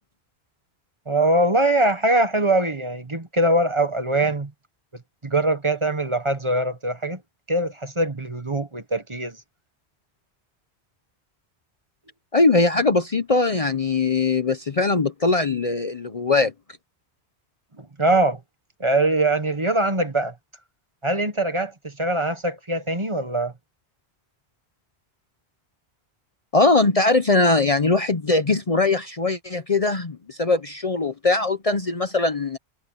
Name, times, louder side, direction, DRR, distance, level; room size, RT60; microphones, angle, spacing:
voice 1, 1.1-4.5 5.2-7.2 7.5-9.4 17.8-18.4 18.8-20.3 21.0-23.5, right 2 dB, 30° right, 1.3 m, -22 dB
voice 2, 12.3-16.5 26.5-32.6, left 3 dB, 35° left, 0.8 m, -21 dB
omnidirectional pair, 1.1 m